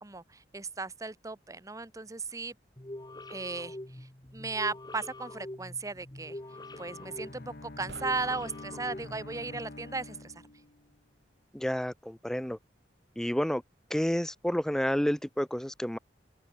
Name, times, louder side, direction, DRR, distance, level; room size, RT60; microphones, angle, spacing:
voice 1, 0.0-2.5 3.3-6.4 6.8-10.3, right 3 dB, 20° right, 0.9 m, -36 dB
sound 1, 2.8-9.6, left 1 dB, 25° left, 1.7 m, -45 dB
Bowed string instrument, 6.3-11.0, left 2 dB, 60° left, 1.2 m, -48 dB
sound 2, 7.9-9.4, right 2 dB, 80° right, 3.2 m, -53 dB
voice 2, 11.5-12.6 13.2-13.6 13.9-16.0, equal, 5° left, 0.4 m, -30 dB
open air
head